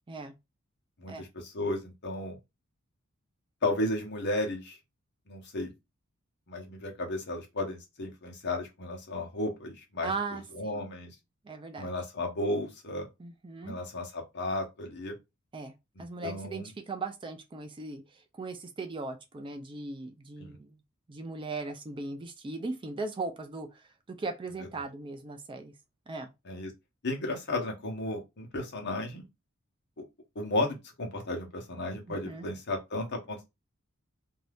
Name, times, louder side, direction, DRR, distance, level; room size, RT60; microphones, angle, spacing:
voice 1, 1.0-2.4 3.6-4.8 5.3-5.7 6.5-10.1 10.5-11.1 11.8-13.1 13.6-15.1 16.0-16.7 20.4-20.6 26.5-26.7 27.0-29.2 30.3-33.4, left 1 dB, 55° left, 0.9 m, -34 dB
voice 2, 10.0-10.8 11.4-11.9 13.2-13.8 15.5-15.7 16.0-20.8 21.1-25.7 26.1-26.3 32.1-32.5, right 3 dB, 25° right, 0.4 m, -38 dB
2.6 x 2.3 x 3.3 m
head